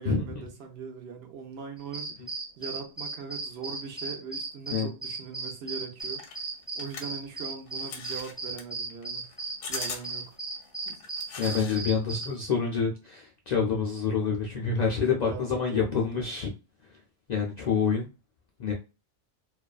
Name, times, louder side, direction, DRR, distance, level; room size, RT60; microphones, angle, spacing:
voice 1, 0.0-2.2 2.6-6.2 6.8-9.3 9.7-10.4 14.8-16.0, right 6 dB, 65° right, 0.9 m, -40 dB
sound 1, 1.8-12.4, right 3 dB, 5° right, 0.7 m, -36 dB
sound 2, 6.0-11.8 12.1-12.6, left 5 dB, 85° left, 1.0 m, -41 dB
voice 2, 11.4-16.5 17.3-18.1 18.6-18.7, left 5 dB, 65° left, 0.4 m, -27 dB
2.6 x 2.3 x 2.2 m
omnidirectional pair, 1.2 m